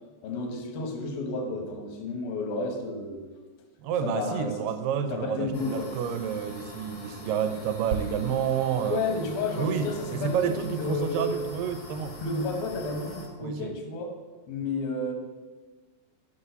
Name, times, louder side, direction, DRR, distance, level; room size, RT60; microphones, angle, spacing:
voice 1, 0.2-3.2 4.0-4.7 5.1-5.9 8.9-11.4 12.2-14.1 14.5-15.1, left 3 dB, 85° left, 3 dB, 3.0 m, -31 dB
voice 2, 3.8-9.0 9.6-12.2 13.4-13.8, right 8 dB, 80° right, 9 dB, 2.2 m, -29 dB
sound 1, 5.5-13.2, equal, 45° left, 0.9 m, -44 dB
sound 2, 7.9-11.6 11.8-12.0, right 5 dB, 45° right, 1.9 m, -40 dB
6.9 x 5.1 x 6.8 m, 1.3 s
omnidirectional pair, 4.1 m